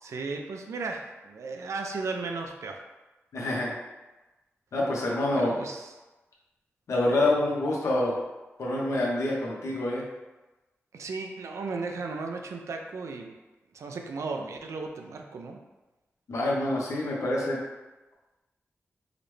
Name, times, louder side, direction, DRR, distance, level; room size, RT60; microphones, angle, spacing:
voice 1, 0.0-2.8 5.3-5.9 10.9-13.3 13.7-15.6, right 3 dB, 85° right, 3 dB, 0.4 m, -35 dB
voice 2, 3.3-3.7 4.7-5.5 6.9-8.2 8.6-10.0 16.3-17.6, left 1 dB, 90° left, -3 dB, 0.8 m, -26 dB
4.9 x 2.1 x 3.1 m, 1.1 s
cardioid pair, 60°, 5 cm